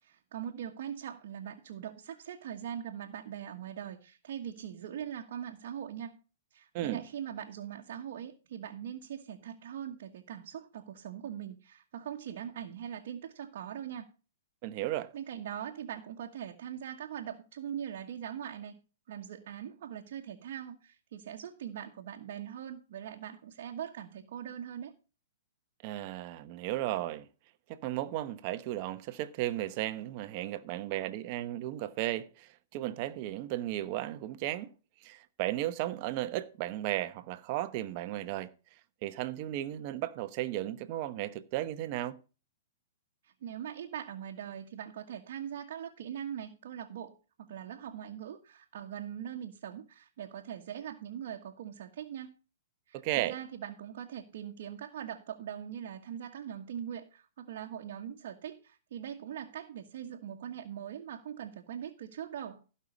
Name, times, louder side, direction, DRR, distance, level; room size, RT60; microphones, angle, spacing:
voice 1, 0.0-6.2 6.5-14.1 15.1-18.8 19.1-24.9 43.2-52.4 52.9-62.6, right 9 dB, 60° right, 1.3 m, -41 dB
voice 2, 14.6-15.1 25.8-27.3 27.7-34.7 35.0-38.5 39.0-42.2 52.9-53.4, right 14 dB, 40° right, 1.0 m, -35 dB
15.5 x 5.7 x 5.2 m
hypercardioid pair, 145°, 0 cm